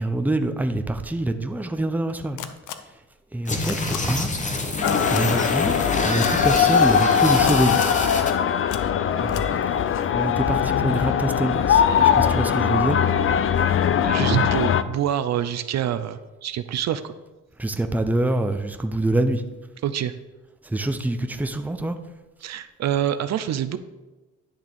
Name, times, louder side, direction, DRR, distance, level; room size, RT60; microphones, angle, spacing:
voice 1, 0.0-2.4 3.3-4.3 5.1-5.7 6.0-7.8 9.2-9.9 10.1-13.0 17.6-19.4 20.6-22.0, right 1 dB, 5° right, 7 dB, 0.7 m, -25 dB
sound 1, 2.4-2.7 3.6-4.0 4.8-5.2 6.2-6.7 7.5-8.0 8.7-8.8 9.3-9.4, left 11 dB, 80° left, 0.7 m, -32 dB
sound 2, 3.5-8.3, left 2 dB, 25° left, 1.2 m, -27 dB
sound 3, 4.8-14.8, left 8 dB, 45° left, 0.5 m, -21 dB
voice 2, 14.0-17.2 19.8-20.1 22.4-23.8, right 10 dB, 60° right, 11 dB, 0.6 m, -26 dB
10.5 x 3.6 x 6.7 m, 1.1 s
cardioid pair, 90°, 30 cm